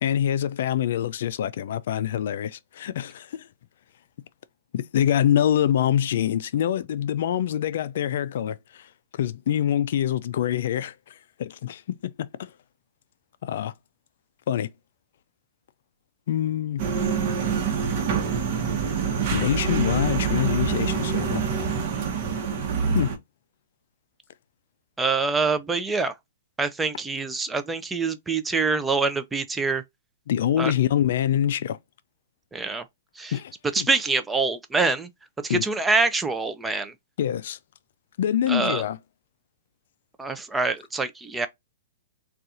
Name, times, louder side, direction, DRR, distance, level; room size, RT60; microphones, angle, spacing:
voice 1, 0.0-3.5 4.7-12.5 13.4-13.7 14.5-14.7 16.3-16.8 19.3-21.4 22.9-23.1 30.3-31.8 33.3-33.9 35.5-35.7 37.2-37.6 38.2-39.0, left 10 dB, 65° left, 0.3 m, -25 dB
sound 1, 16.8-23.2, right 6 dB, 50° right, 0.9 m, -26 dB
voice 2, 25.0-26.1 26.6-29.8 30.6-30.7 32.5-32.8 33.2-33.3 33.7-35.1 35.4-36.9 38.5-38.8 40.2-41.5, right 4 dB, 10° right, 0.4 m, -25 dB
4.0 x 2.4 x 2.5 m
hypercardioid pair, 130°, 0 cm